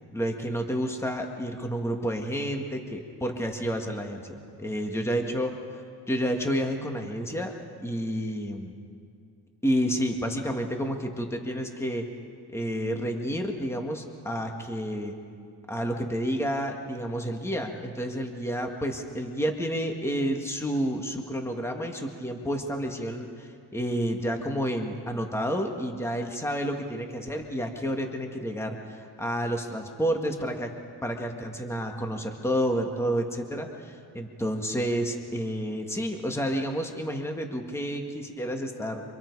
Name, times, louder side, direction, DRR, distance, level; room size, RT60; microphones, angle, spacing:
voice 1, 0.0-5.5 6.1-7.5 7.8-8.7 9.6-12.0 12.5-15.1 15.7-30.7 31.0-39.0, equal, 5° left, 3 dB, 2.0 m, -30 dB
29.0 x 26.0 x 4.8 m, 2.4 s
cardioid pair, 110°, 40 cm